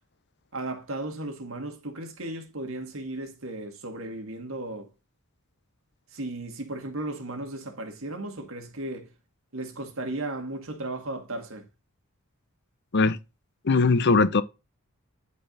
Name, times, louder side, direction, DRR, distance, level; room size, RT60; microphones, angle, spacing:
voice 1, 0.5-4.9 6.1-9.1 9.5-11.7, right 2 dB, 65° right, 1.9 m, -35 dB
voice 2, 13.6-14.4, left 4 dB, 50° left, 0.7 m, -20 dB
10.5 x 4.4 x 3.8 m
head